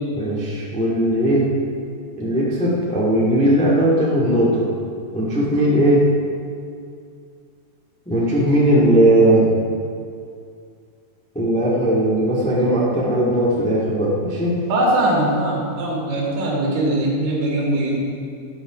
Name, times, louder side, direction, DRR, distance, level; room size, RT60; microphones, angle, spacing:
voice 1, 0.1-1.4 2.2-4.6 5.1-6.0 8.0-9.5 11.3-14.5, right 1 dB, 5° left, -6 dB, 0.6 m, -18 dB
voice 2, 14.7-18.1, right 1 dB, 80° right, -4 dB, 4.3 m, -21 dB
12.0 x 8.2 x 5.1 m, 2.4 s
omnidirectional pair, 4.4 m